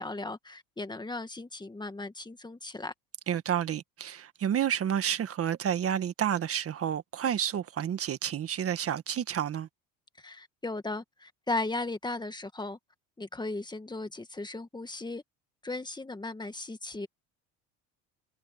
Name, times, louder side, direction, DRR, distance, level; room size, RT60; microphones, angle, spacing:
voice 1, 0.0-2.9 10.2-12.8 13.2-15.2 15.6-17.1, left 2 dB, 15° left, 1.8 m, -36 dB
voice 2, 3.3-9.7, right 9 dB, 45° right, 1.6 m, -30 dB
supercardioid pair, 100°, 33 cm